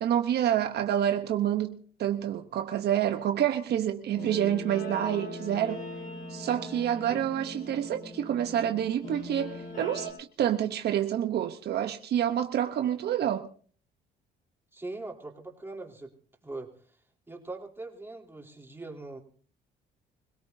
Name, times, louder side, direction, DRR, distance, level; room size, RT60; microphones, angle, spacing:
voice 1, 0.0-5.8 6.3-13.5, right 10 dB, 65° right, 0.9 m, -28 dB
Guitar, 4.1-10.1, left 1 dB, 45° left, 7.0 m, -40 dB
voice 2, 14.7-16.1 16.4-16.7 17.3-19.2, right 2 dB, 10° right, 3.4 m, -41 dB
25.5 x 17.5 x 2.7 m
cardioid pair, 95°, 18 cm